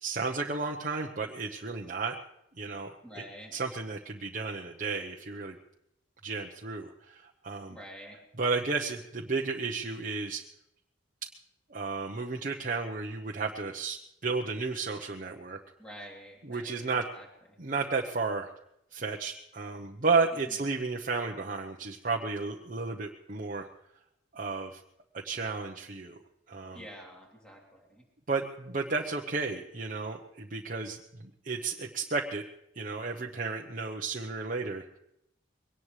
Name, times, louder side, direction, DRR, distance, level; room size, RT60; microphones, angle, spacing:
voice 1, 0.0-2.1 2.6-3.2 3.5-5.5 6.2-7.8 8.4-10.4 11.7-15.6 16.4-17.0 17.6-18.5 18.9-23.7 24.3-24.8 25.1-26.2 26.5-26.8 28.3-31.0 31.4-32.4 32.7-34.9, right 4 dB, 45° right, 0 dB, 0.9 m, -33 dB
voice 2, 3.0-3.5 7.7-8.2 15.8-16.9 17.1-17.3 20.5-20.6 26.7-28.0, equal, 5° left, -2 dB, 3.1 m, -47 dB
22.5 x 18.5 x 3.3 m, 0.80 s
head